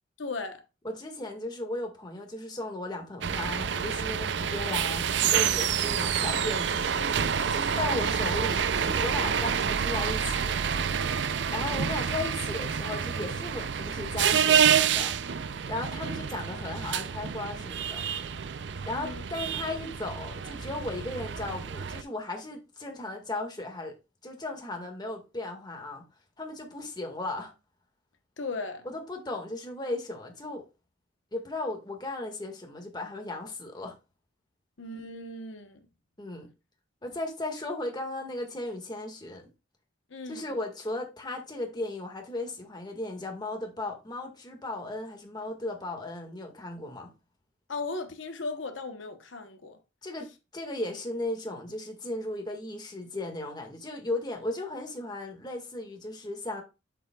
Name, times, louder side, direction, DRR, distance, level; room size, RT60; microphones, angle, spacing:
voice 1, 0.2-0.6 18.9-19.2 28.4-28.9 34.8-35.9 40.1-40.5 47.7-49.8, left 3 dB, 85° left, 1.0 m, -37 dB
voice 2, 0.8-6.9 7.5-10.6 11.5-15.2 15.7-18.1 18.9-23.9 24.2-26.0 26.4-27.5 28.8-30.7 31.3-34.0 36.2-36.5 37.0-39.5 40.3-47.1 50.0-56.6, left 2 dB, 20° left, 1.7 m, -36 dB
sound 1, 3.2-22.0, right 7 dB, 65° right, 0.5 m, -28 dB
8.2 x 7.2 x 2.3 m
head